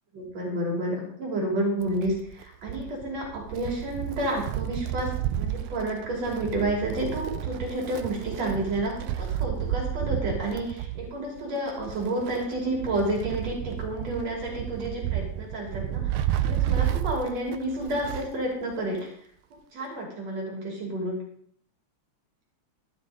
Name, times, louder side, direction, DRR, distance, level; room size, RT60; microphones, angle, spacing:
voice 1, 0.1-16.1 16.4-19.1 19.7-21.2, right 1 dB, 60° right, -1 dB, 4.0 m, -30 dB
Wind, 1.8-18.4 18.7-18.8 19.8-19.9, right 11 dB, 90° right, 2.1 m, -31 dB
14.0 x 11.0 x 3.8 m, 0.64 s
omnidirectional pair, 3.3 m